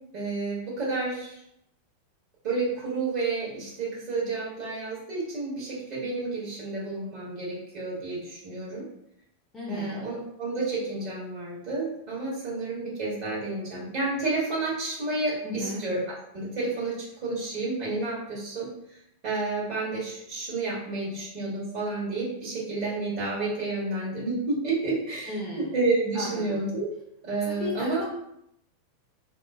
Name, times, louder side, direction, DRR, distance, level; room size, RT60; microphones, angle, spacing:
voice 1, 0.1-1.4 2.4-8.8 9.7-16.0 16.3-18.7 19.2-26.9 27.2-28.0, right 3 dB, 45° right, -6 dB, 1.4 m, -30 dB
voice 2, 9.5-10.1 15.4-15.9 25.3-25.7 26.1-26.7 27.5-28.0, left 2 dB, 20° left, -4 dB, 0.5 m, -35 dB
2.9 x 2.0 x 2.4 m, 0.76 s
figure-of-eight pair, 90°, 0 cm